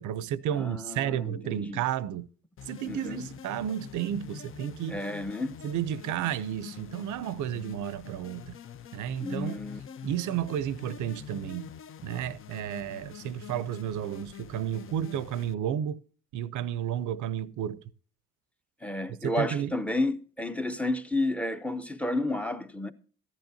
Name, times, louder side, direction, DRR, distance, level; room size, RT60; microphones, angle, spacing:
voice 1, 0.0-2.3 2.7-5.0 5.6-8.6 8.9-9.6 10.0-11.7 12.0-16.0 16.3-17.8 19.2-19.8, right 10 dB, 75° right, 0.6 m, -32 dB
voice 2, 0.5-1.8 2.8-3.3 4.9-5.6 9.2-9.8 18.8-22.9, left 2 dB, 5° left, 0.7 m, -31 dB
sound 1, 2.6-15.5, left 8 dB, 45° left, 0.5 m, -46 dB
14.5 x 10.5 x 2.7 m
cardioid pair, 90°, 30 cm